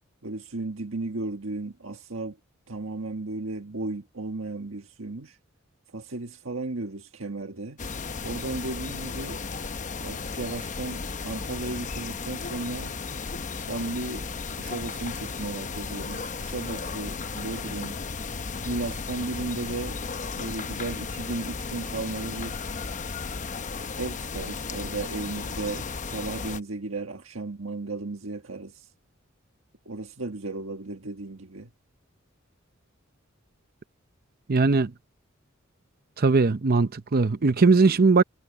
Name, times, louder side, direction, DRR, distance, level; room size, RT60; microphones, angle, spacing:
voice 1, 0.2-2.4 2.7-5.4 5.9-7.8 8.2-9.4 10.0-12.9 13.7-18.0 18.6-20.0 20.3-22.6 24.0-28.9 29.8-31.7, right 2 dB, 70° right, 1.7 m, -35 dB
sound 1, 7.8-26.6, left 4 dB, 40° left, 0.8 m, -35 dB
voice 2, 34.5-34.9 36.2-38.2, right 3 dB, 50° right, 0.7 m, -20 dB
head